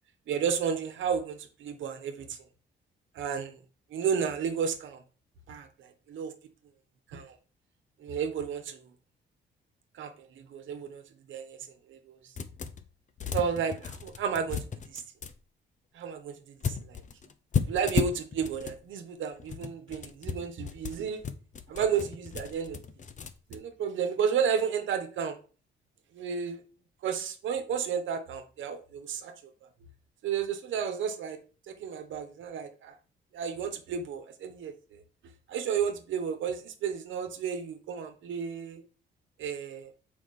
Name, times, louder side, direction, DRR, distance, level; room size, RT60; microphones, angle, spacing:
voice 1, 0.3-2.4 3.1-3.6 3.9-5.0 5.5-6.3 7.1-7.3 8.0-8.8 10.0-11.0 11.3-11.6 11.9-12.2 13.3-15.0 15.9-16.3 16.7-17.0 17.7-21.2 21.7-22.8 23.5-25.4 26.1-26.6 27.0-29.3 30.2-31.4 31.7-32.9 33.3-35.0 35.5-38.8 39.4-39.9, right 7 dB, 75° right, 1.1 m, -32 dB
sound 1, 12.4-12.9 13.2-15.3 16.6-18.8 19.3-23.6, left 6 dB, 40° left, 0.7 m, -34 dB
6.3 x 4.8 x 3.7 m
cardioid pair, 90°, 20 cm